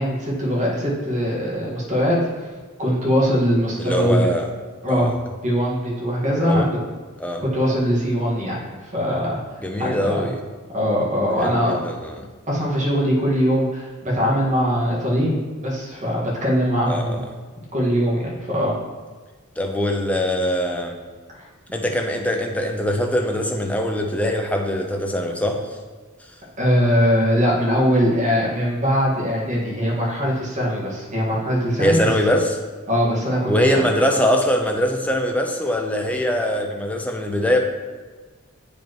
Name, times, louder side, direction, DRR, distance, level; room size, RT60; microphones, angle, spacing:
voice 1, 0.0-2.2 2.8-4.3 4.8-5.1 5.4-6.6 7.4-8.6 8.9-9.4 9.8-10.3 10.7-11.8 12.5-17.2 17.7-18.2 18.5-18.8 21.4-21.5 26.6-32.0 32.9-33.8, equal, 35° right, -4 dB, 1.8 m, -21 dB
voice 2, 3.8-4.5 4.9-5.1 6.3-6.7 7.2-7.4 9.6-10.4 11.4-12.3 16.9-17.2 19.6-21.0 21.7-25.8 31.8-32.6 33.5-37.6, equal, 5° left, 2 dB, 0.7 m, -22 dB
8.6 x 5.1 x 3.1 m, 1.4 s
head